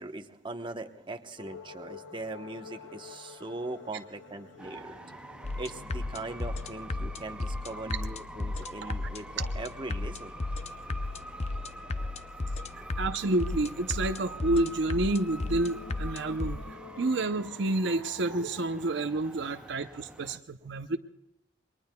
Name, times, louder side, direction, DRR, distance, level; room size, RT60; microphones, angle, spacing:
voice 1, 0.0-5.2 5.6-10.3 11.5-11.7 12.8-12.9, right 2 dB, 25° right, 6 dB, 1.0 m, -40 dB
sound 1, 1.4-17.3, left 5 dB, 90° left, 2.2 m, -51 dB
sound 2, 4.6-20.4, right 1 dB, 5° right, 0.5 m, -46 dB
sound 3, 5.4-16.6, left 2 dB, 35° left, 0.6 m, -35 dB
voice 2, 13.0-16.6 17.0-21.0, right 2 dB, 70° right, 8 dB, 0.7 m, -29 dB
28.5 x 22.5 x 2.3 m, 0.86 s
head